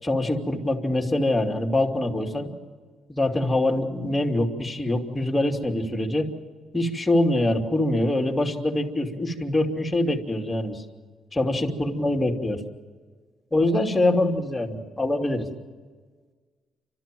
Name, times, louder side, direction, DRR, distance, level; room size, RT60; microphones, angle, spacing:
voice 1, 0.0-2.5 3.1-6.3 6.7-10.8 11.3-12.6 13.5-15.5, left 1 dB, 15° left, 1 dB, 2.7 m, -24 dB
30.0 x 13.5 x 7.7 m, 1.5 s
cardioid pair, 90°, 0 cm